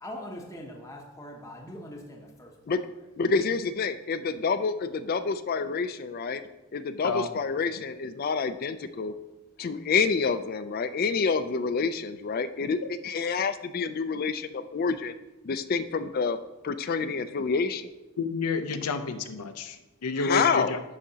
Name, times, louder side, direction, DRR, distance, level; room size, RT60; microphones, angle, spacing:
voice 1, 0.0-2.8, left 1 dB, 15° left, 0 dB, 0.7 m, -42 dB
voice 2, 3.2-6.4 6.7-9.1 9.6-12.8 13.0-15.1 15.4-16.4 16.6-17.9 20.2-20.7, left 5 dB, 40° left, 12 dB, 0.3 m, -28 dB
voice 3, 18.2-20.8, left 4 dB, 90° left, 9 dB, 0.6 m, -30 dB
11.5 x 4.9 x 2.8 m, 1.1 s
head